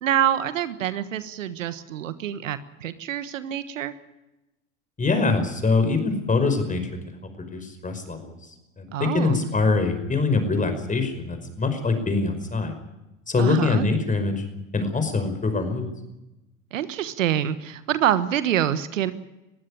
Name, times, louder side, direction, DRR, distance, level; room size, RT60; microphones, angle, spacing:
voice 1, 0.0-3.9 8.9-9.4 13.4-13.8 16.7-19.1, right 10 dB, 80° right, 13 dB, 1.4 m, -26 dB
voice 2, 5.0-6.9 7.4-8.4 8.8-12.8 13.3-14.4 14.7-15.9, left 3 dB, 20° left, 8 dB, 5.3 m, -24 dB
21.0 x 15.5 x 10.0 m, 0.97 s
hypercardioid pair, 80°, 38 cm